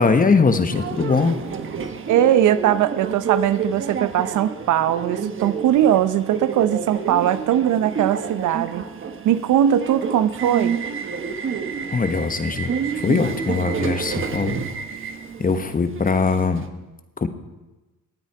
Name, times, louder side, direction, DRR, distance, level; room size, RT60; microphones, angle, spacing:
voice 1, 0.0-1.4 11.9-14.6 15.0-15.1 15.4-16.6 17.2-17.3, left 4 dB, 30° left, 9 dB, 1.2 m, -21 dB
Subway metro underground, 0.7-16.7, right 6 dB, 45° right, 1.2 m, -29 dB
voice 2, 2.1-8.8 9.2-10.8, right 11 dB, 80° right, 13 dB, 0.8 m, -20 dB
18.5 x 9.1 x 4.7 m, 1.1 s
cardioid pair, 90°, 30 cm